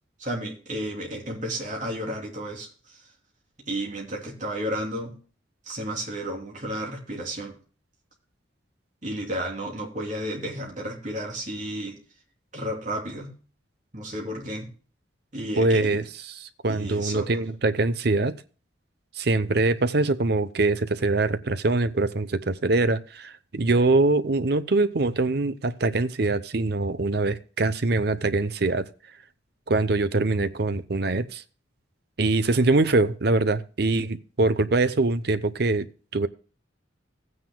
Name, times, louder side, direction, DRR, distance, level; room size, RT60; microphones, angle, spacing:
voice 1, 0.2-3.0 3.7-5.2 5.6-7.5 9.0-12.0 12.5-13.3 13.9-14.7 15.3-16.0 16.6-17.3, right 1 dB, 40° right, 3.1 m, -32 dB
voice 2, 15.6-16.0 16.4-18.3 19.2-28.9 29.7-31.4 32.2-35.9 36.1-36.3, right 2 dB, 55° right, 0.7 m, -23 dB
16.0 x 9.5 x 2.2 m
head